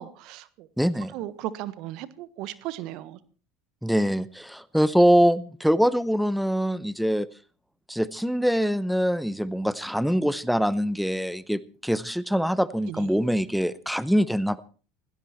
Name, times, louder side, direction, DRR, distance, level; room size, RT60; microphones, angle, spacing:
voice 1, 0.0-0.7 1.1-3.2 12.9-13.1, right 14 dB, 60° right, 16 dB, 1.4 m, -36 dB
voice 2, 0.8-1.1 3.8-7.3 7.9-14.6, equal, ahead, 18 dB, 0.8 m, -24 dB
18.5 x 16.5 x 4.4 m, 0.38 s
hypercardioid pair, 80°, 0 cm